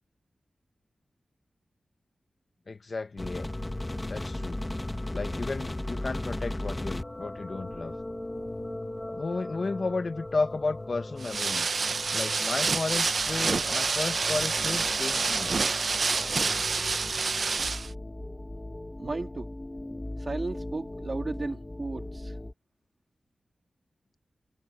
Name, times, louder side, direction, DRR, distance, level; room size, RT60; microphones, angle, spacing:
voice 1, 2.7-3.5 4.1-4.6 5.1-7.9 9.1-11.8 12.1-15.6, left 3 dB, 40° left, 1.2 m, -33 dB
sound 1, 3.2-22.5, left 1 dB, 15° left, 1.7 m, -37 dB
sound 2, 11.2-17.9, right 4 dB, 50° right, 0.5 m, -28 dB
voice 2, 19.0-19.5 20.2-22.4, right 3 dB, 35° right, 2.1 m, -34 dB
wide cardioid pair, 155°, 0 cm